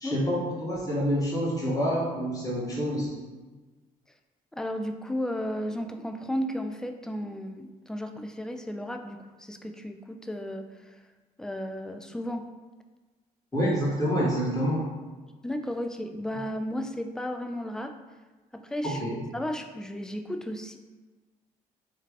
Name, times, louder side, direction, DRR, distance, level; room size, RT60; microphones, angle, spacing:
voice 1, 0.0-3.1 13.5-14.8 18.8-19.2, equal, 20° left, -6 dB, 1.4 m, -27 dB
voice 2, 4.5-11.0 11.4-12.5 15.4-17.9 18.5-19.0 19.3-20.8, equal, 5° left, 6 dB, 0.3 m, -34 dB
3.2 x 2.3 x 3.4 m, 1.3 s
hypercardioid pair, 50°, 19 cm